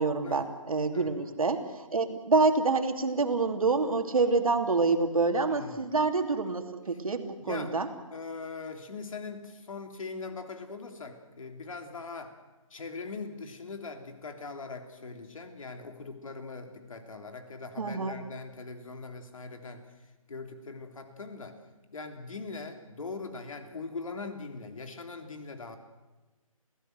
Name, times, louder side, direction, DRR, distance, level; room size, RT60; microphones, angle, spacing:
voice 1, 0.0-7.9 17.8-18.2, right 3 dB, 75° right, 6 dB, 2.9 m, -27 dB
voice 2, 5.5-5.9 7.4-7.7 8.1-12.3 12.7-19.9 20.3-21.6 21.9-25.8, left 4 dB, 65° left, 6 dB, 3.2 m, -41 dB
29.0 x 16.0 x 8.0 m, 1.2 s
hypercardioid pair, 155°, 18 cm